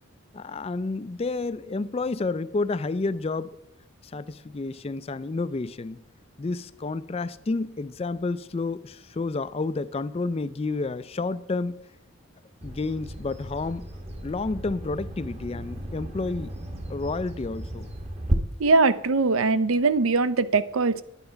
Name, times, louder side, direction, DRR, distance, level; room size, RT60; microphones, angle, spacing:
voice 1, 0.3-3.6 4.0-6.0 6.4-11.8 12.6-13.9 14.2-16.5 16.9-17.9, left 3 dB, 30° left, 0.3 m, -30 dB
Bird vocalization bird call bird song, 12.6-18.3, right 1 dB, 30° right, 1.1 m, -34 dB
voice 2, 18.6-21.0, right 3 dB, 75° right, 0.6 m, -21 dB
10.5 x 9.9 x 5.7 m
head